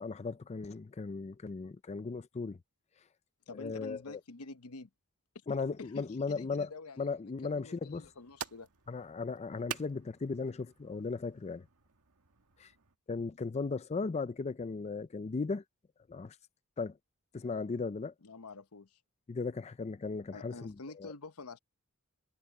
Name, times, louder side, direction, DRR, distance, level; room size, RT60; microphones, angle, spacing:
voice 1, 0.0-2.6 3.5-4.2 5.5-8.1 8.9-11.7 12.6-12.7 13.1-15.6 16.1-16.4 16.8-17.0 17.3-18.1 19.3-21.1, left 4 dB, 30° left, 0.4 m, -37 dB
voice 2, 3.5-4.9 5.5-8.7 18.2-19.0 20.3-21.6, left 3 dB, 80° left, 1.0 m, -48 dB
sound 1, 7.9-13.0, right 7 dB, 85° right, 1.7 m, -48 dB
head